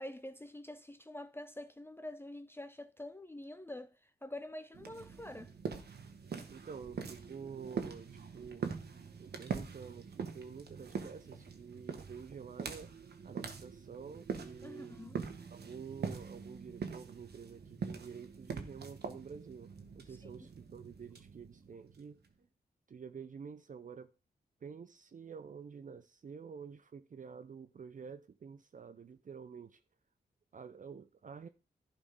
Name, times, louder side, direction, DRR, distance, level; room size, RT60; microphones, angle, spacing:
voice 1, 0.0-5.5 14.6-15.2 20.1-20.5, left 1 dB, 15° left, 0.6 m, -46 dB
sound 1, 4.7-22.3, right 5 dB, 75° right, 1.4 m, -44 dB
voice 2, 6.5-8.6 9.2-12.9 13.2-15.0 15.5-22.2 22.9-24.1 24.6-29.8 30.5-31.5, right 6 dB, 50° right, 0.6 m, -49 dB
11.5 x 4.3 x 5.3 m
cardioid pair, 65°, 17 cm